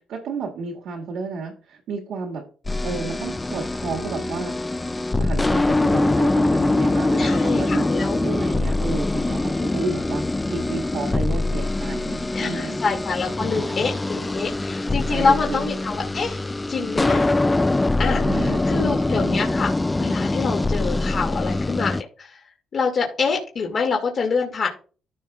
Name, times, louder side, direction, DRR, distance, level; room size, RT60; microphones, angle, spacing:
voice 1, 0.0-2.4 2.8-4.7 5.1-12.8 13.3-13.4 13.7-13.8 15.1-15.9 18.2-19.5, right 4 dB, 80° right, 1 dB, 1.8 m, -32 dB
sound 1, 2.6-22.0, left 2 dB, 15° left, 0.3 m, -23 dB
voice 2, 7.2-8.2 12.3-16.4 16.7-17.3 18.0-19.7 20.0-22.4 22.7-24.7, left 5 dB, 50° left, 0 dB, 2.1 m, -26 dB
14.5 x 5.5 x 2.3 m, 0.39 s
cardioid pair, 90°, 0 cm